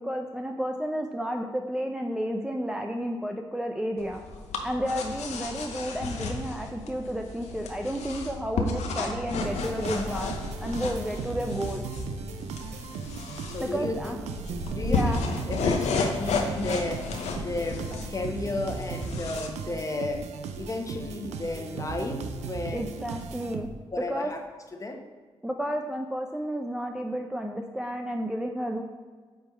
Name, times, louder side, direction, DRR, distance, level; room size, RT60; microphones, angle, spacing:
voice 1, 0.0-4.2 4.6-10.3 10.6-11.8 13.6-14.2 14.8-15.2 22.7-23.7 24.1-24.3 25.4-28.8, equal, 5° right, 3 dB, 0.6 m, -31 dB
sound 1, 4.0-19.5, left 4 dB, 70° left, 0.8 m, -33 dB
sound 2, 9.4-24.0, right 5 dB, 70° right, 0.5 m, -37 dB
voice 2, 13.5-14.2 14.7-15.0 15.5-17.1 17.3-20.3 20.6-22.8 23.9-24.4 24.8-25.0, left 2 dB, 25° left, 3 dB, 1.2 m, -33 dB
8.7 x 3.5 x 4.5 m, 1.5 s
hypercardioid pair, 40°, 12 cm